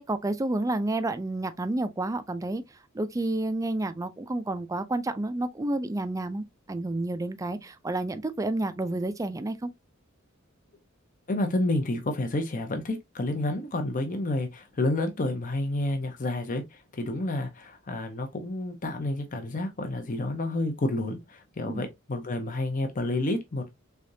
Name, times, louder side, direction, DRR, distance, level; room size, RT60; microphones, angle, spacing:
voice 1, 0.0-2.6 2.9-9.7 21.7-21.9, right 2 dB, 15° right, 0.4 m, -30 dB
voice 2, 11.3-23.7, left 2 dB, 40° left, 0.7 m, -30 dB
3.6 x 3.4 x 2.6 m
head